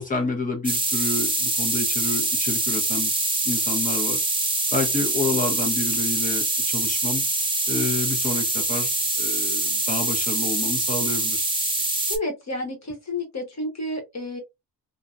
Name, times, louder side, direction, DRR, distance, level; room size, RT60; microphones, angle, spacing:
voice 1, 0.0-3.1 3.4-4.2 4.7-7.2 7.7-11.4, left 3 dB, 20° left, 1.2 m, -29 dB
sound 1, 0.6-12.2, right 2 dB, 10° right, 0.9 m, -24 dB
voice 2, 12.1-14.4, left 1 dB, 40° left, 1.4 m, -30 dB
2.9 x 2.5 x 2.4 m
wide cardioid pair, 100°, 39 cm